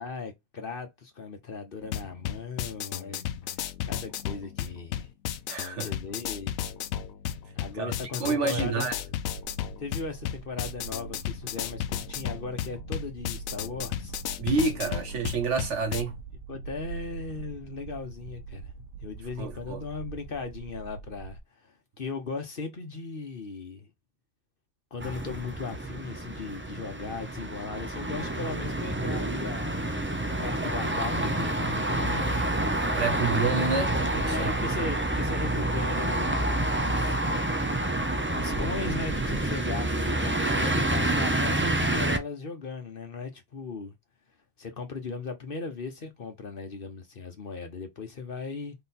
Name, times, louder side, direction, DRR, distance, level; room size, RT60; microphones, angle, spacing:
voice 1, 0.0-5.1 5.8-6.6 7.5-8.9 9.8-14.1 16.5-18.7 19.0-23.9 24.9-29.9 30.3-32.4 34.3-37.2 38.3-43.9 44.6-48.7, left 4 dB, 45° left, 1.1 m, -38 dB
sound 1, 1.8-16.0, left 10 dB, 80° left, 1.0 m, -34 dB
voice 2, 5.5-5.9 7.8-7.9 8.2-9.0 14.4-16.2 19.4-19.8 33.0-34.5, right 4 dB, 60° right, 1.2 m, -28 dB
sound 2, 9.3-21.4, right 5 dB, 90° right, 1.1 m, -43 dB
sound 3, 25.0-42.2, right 1 dB, 15° right, 0.4 m, -28 dB
3.8 x 3.3 x 4.2 m
omnidirectional pair, 1.4 m